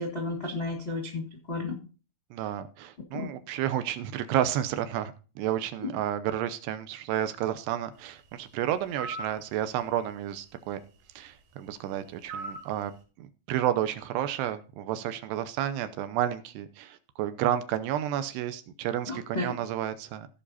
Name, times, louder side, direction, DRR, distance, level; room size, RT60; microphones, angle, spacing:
voice 1, 0.0-1.7 3.1-3.3 19.1-19.5, left 2 dB, 35° left, 0 dB, 0.9 m, -33 dB
voice 2, 2.3-10.8 11.2-12.9 13.2-20.3, right 11 dB, 80° right, 11 dB, 2.9 m, -31 dB
sound 1, 8.9-9.3 12.3-12.7, right 3 dB, 50° right, 3.9 m, -37 dB
16.5 x 5.6 x 4.1 m, 0.35 s
omnidirectional pair, 4.9 m